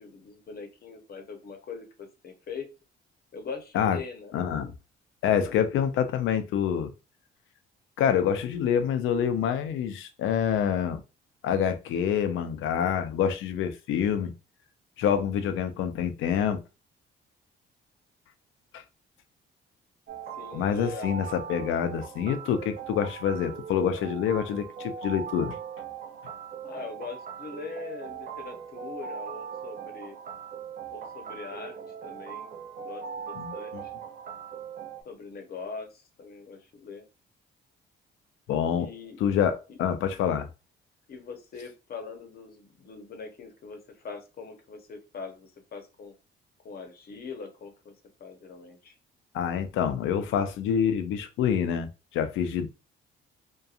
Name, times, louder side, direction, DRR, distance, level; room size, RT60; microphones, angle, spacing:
voice 1, 0.0-2.7 3.3-4.3 20.4-21.2 26.6-30.2 30.9-32.5 32.8-33.9 35.0-37.0 38.8-39.2 39.7-39.8 41.1-46.1 46.6-47.9 48.2-49.0, left 5 dB, 50° left, 0.8 m, -42 dB
voice 2, 4.3-4.7 5.2-6.9 8.0-11.0 11.4-14.3 15.0-16.6 18.7-18.8 20.5-25.6 33.4-33.8 38.5-38.9 39.2-40.5 49.3-52.7, left 8 dB, 85° left, 0.5 m, -27 dB
sound 1, 20.1-35.0, right 7 dB, 45° right, 0.5 m, -40 dB
2.7 x 2.2 x 2.4 m
cardioid pair, 90°, 20 cm